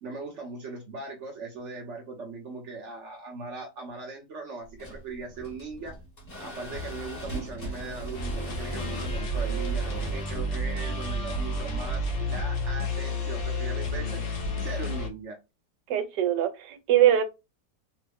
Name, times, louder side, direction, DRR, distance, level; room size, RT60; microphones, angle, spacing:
voice 1, 0.0-6.0 6.4-14.2 14.6-15.4, right 3 dB, 55° right, 0.9 m, -39 dB
sound 1, 4.6-12.5, right 1 dB, 40° left, 1.1 m, -41 dB
sound 2, 8.1-15.1, equal, 65° left, 0.5 m, -30 dB
voice 2, 15.9-17.3, right 11 dB, 85° right, 1.2 m, -22 dB
3.0 x 2.1 x 3.4 m
omnidirectional pair, 1.8 m